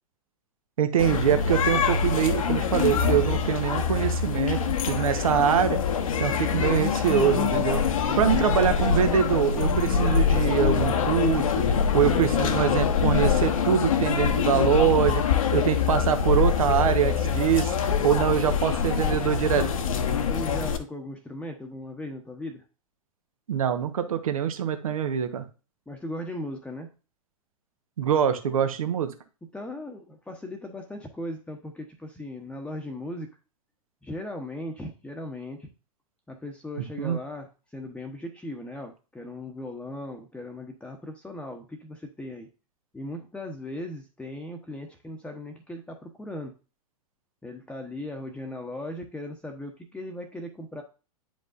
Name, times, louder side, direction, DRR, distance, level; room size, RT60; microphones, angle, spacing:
voice 1, 0.8-5.8 6.2-7.8 8.2-11.4 11.9-15.2 15.5-17.7 18.0-19.7 23.5-25.4 28.0-29.1 37.0-37.2, right 9 dB, 70° right, 8 dB, 1.2 m, -24 dB
sound 1, 1.0-20.8, left 6 dB, 70° left, 1.1 m, -24 dB
voice 2, 20.3-22.6 25.9-26.9 29.5-33.3 34.0-35.7 36.3-37.5 37.7-42.5 42.9-46.5 47.4-50.8, left 1 dB, 5° left, 2 dB, 1.0 m, -38 dB
9.4 x 5.3 x 2.6 m, 0.33 s
figure-of-eight pair, 100°, 18 cm